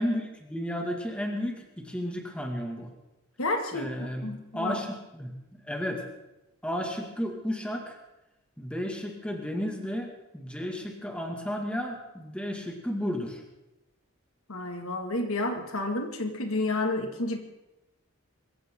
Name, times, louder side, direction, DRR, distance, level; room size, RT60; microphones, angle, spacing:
voice 1, 0.0-2.9 3.7-6.0 6.6-8.0 8.6-13.4, equal, 5° left, 2 dB, 2.2 m, -33 dB
voice 2, 3.4-4.8 14.5-17.4, left 2 dB, 75° left, 5 dB, 2.2 m, -30 dB
24.5 x 15.0 x 3.9 m, 0.97 s
head